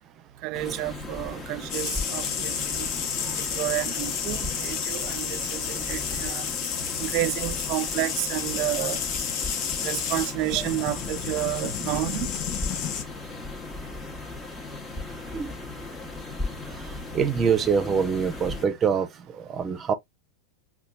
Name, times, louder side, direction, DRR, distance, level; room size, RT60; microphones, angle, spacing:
voice 1, 0.4-2.9 3.4-6.5 7.0-9.0 9.8-12.3, right 17 dB, 50° right, 0.3 m, -30 dB
sound 1, 0.5-18.7, left 3 dB, 20° left, 1.1 m, -37 dB
sound 2, 1.7-13.0, left 7 dB, 45° left, 0.9 m, -31 dB
voice 2, 2.9-3.6 6.7-7.1 10.6-10.7 15.3-15.5 16.6-19.9, right 6 dB, 25° right, 0.8 m, -27 dB
5.5 x 2.4 x 2.4 m
hypercardioid pair, 110°, 0 cm